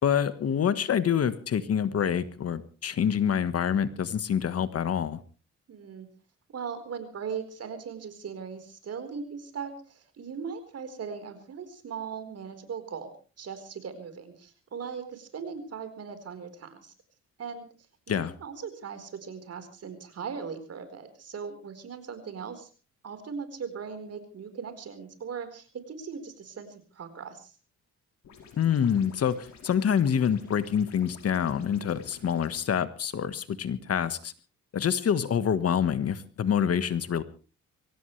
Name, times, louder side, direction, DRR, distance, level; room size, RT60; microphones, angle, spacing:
voice 1, 0.0-5.2 18.1-18.3 28.6-34.3 34.7-37.2, left 8 dB, 55° left, 13 dB, 1.5 m, -26 dB
voice 2, 5.7-6.1 6.5-16.9 17.4-17.7 18.1-22.7 23.0-27.5, right 6 dB, 55° right, 9 dB, 4.5 m, -39 dB
sound 1, 28.2-32.6, left 6 dB, 70° left, 5.7 m, -51 dB
24.0 x 17.5 x 3.3 m, 0.36 s
cardioid pair, 100°, 29 cm